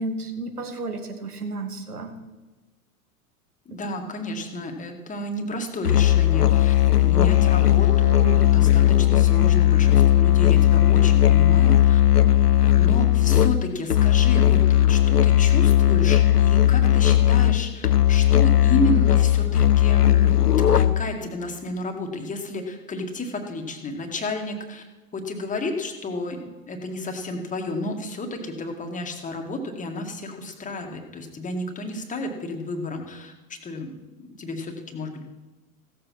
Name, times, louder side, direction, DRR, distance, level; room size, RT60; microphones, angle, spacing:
voice 1, 0.0-2.1, right 2 dB, 80° right, 5 dB, 2.1 m, -32 dB
voice 2, 3.7-12.0 12.8-19.5 19.8-20.4 20.7-24.8 25.1-35.3, left 1 dB, 15° left, 3 dB, 2.0 m, -31 dB
Musical instrument, 5.8-21.2, left 11 dB, 90° left, 0.6 m, -17 dB
16.0 x 7.7 x 6.0 m, 1.2 s
figure-of-eight pair, 90°, 45 cm